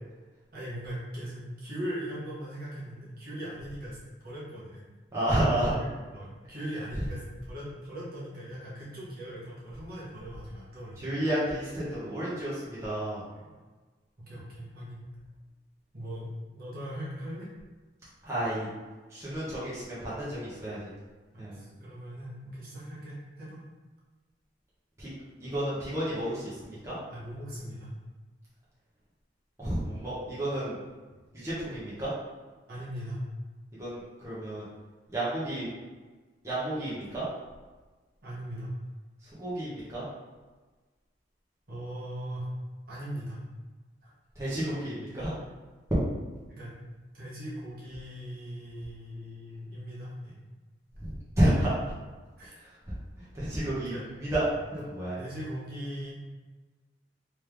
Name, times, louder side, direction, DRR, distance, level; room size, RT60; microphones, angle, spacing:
voice 1, 0.5-4.0 4.2-4.8 5.5-11.2 13.3-13.5 14.2-15.0 15.9-16.2 16.5-17.5 21.3-23.6 26.5-26.6 27.1-27.9 32.7-33.2 38.2-38.7 41.7-42.5 42.9-43.4 44.0-44.1 46.5-46.7 47.1-50.4 52.4-52.6 53.9-54.1 55.2-56.1, equal, 50° right, -7 dB, 1.2 m, -39 dB
voice 2, 5.1-5.7 11.0-13.2 18.2-18.7 19.1-20.9 21.4-21.6 25.0-25.1 25.4-26.9 29.6-30.7 31.3-32.1 33.8-34.7 35.1-35.7 36.4-37.2 39.4-40.0 44.4-45.3 51.0-51.7 52.9-53.0 53.3-54.0 54.2-54.4 54.7-55.2, right 1 dB, 15° right, -10 dB, 1.0 m, -31 dB
3.3 x 3.2 x 3.4 m, 1.3 s
head